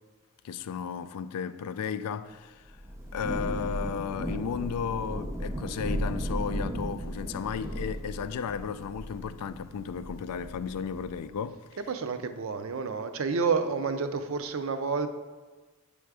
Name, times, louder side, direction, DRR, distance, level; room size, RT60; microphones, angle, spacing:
voice 1, 0.4-2.8 3.1-11.7, left 7 dB, 90° left, 0.3 m, -34 dB
Thunder / Rain, 2.7-11.3, equal, 10° right, 0.6 m, -36 dB
voice 2, 11.8-15.1, right 5 dB, 60° right, 0.5 m, -29 dB
8.1 x 3.4 x 4.8 m
head